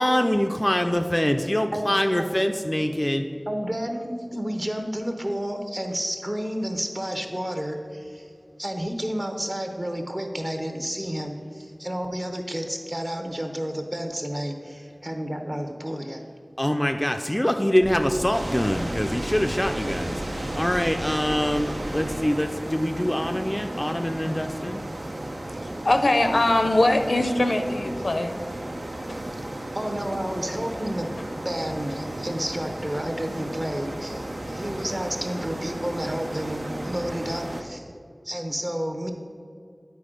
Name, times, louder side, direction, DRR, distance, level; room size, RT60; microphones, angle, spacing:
voice 1, 0.0-3.3 16.6-24.8, equal, 20° left, 5 dB, 0.4 m, -24 dB
voice 2, 1.7-2.3 3.5-8.3 8.6-16.2 29.7-31.1 31.4-37.9 38.2-39.1, equal, 30° right, 5 dB, 0.9 m, -31 dB
sound 1, 17.8-22.2, equal, 60° right, 1.4 m, -37 dB
sound 2, 18.3-37.6, right 1 dB, 75° right, 0.6 m, -34 dB
voice 3, 25.6-28.4, left 2 dB, 80° left, 7 dB, 0.5 m, -22 dB
9.4 x 4.4 x 5.0 m, 2.3 s
wide cardioid pair, 50°, 0 cm